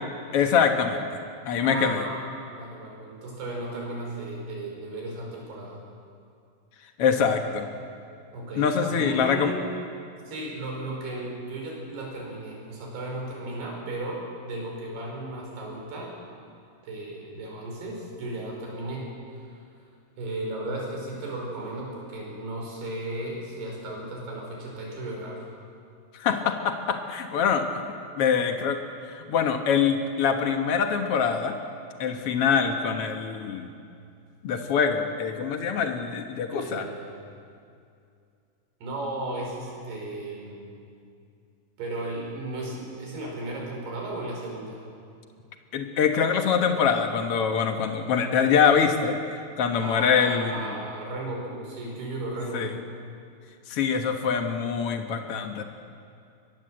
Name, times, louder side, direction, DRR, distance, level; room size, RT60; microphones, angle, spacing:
voice 1, 0.3-1.2 1.4-2.0 7.0-7.7 8.5-9.5 26.1-27.7 28.2-28.8 29.1-31.5 32.0-33.7 34.4-36.9 45.7-50.8 52.5-52.7 53.7-55.6, left 6 dB, 75° left, 5 dB, 1.3 m, -24 dB
voice 2, 1.6-5.8 8.3-9.7 10.3-16.2 16.8-19.1 19.3-19.6 20.2-25.5 36.5-37.2 38.8-40.7 41.8-44.8 49.8-52.8, right 2 dB, 75° right, -1 dB, 7.3 m, -35 dB
23.5 x 20.5 x 7.8 m, 2.4 s
omnidirectional pair, 4.7 m